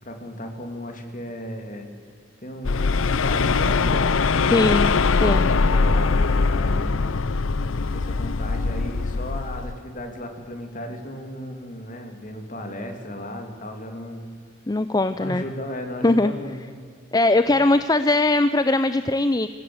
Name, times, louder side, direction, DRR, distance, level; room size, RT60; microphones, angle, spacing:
voice 1, 0.0-1.9 2.4-5.1 5.4-7.2 7.6-14.2 15.1-16.6 17.5-17.6, left 1 dB, 40° left, 4 dB, 3.0 m, -35 dB
sound 1, 2.6-9.7, left 4 dB, 80° left, 0.7 m, -22 dB
voice 2, 4.5-5.0 5.2-5.5 14.7-15.4 16.0-16.3 17.1-19.5, left 2 dB, 20° left, 12 dB, 0.5 m, -20 dB
26.0 x 16.0 x 8.0 m, 2.1 s
head